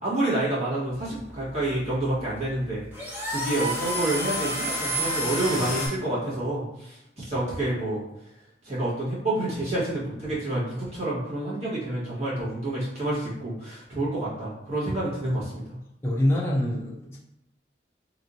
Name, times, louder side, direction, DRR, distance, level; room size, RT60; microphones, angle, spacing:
voice 1, 0.0-8.0 8.6-15.8, right 1 dB, 35° right, -8 dB, 1.4 m, -28 dB
sound 1, 0.9-5.9, equal, 10° right, 0.9 m, -30 dB
voice 2, 16.0-17.2, left 1 dB, 15° left, -5 dB, 0.5 m, -25 dB
3.4 x 3.0 x 2.6 m, 0.85 s
head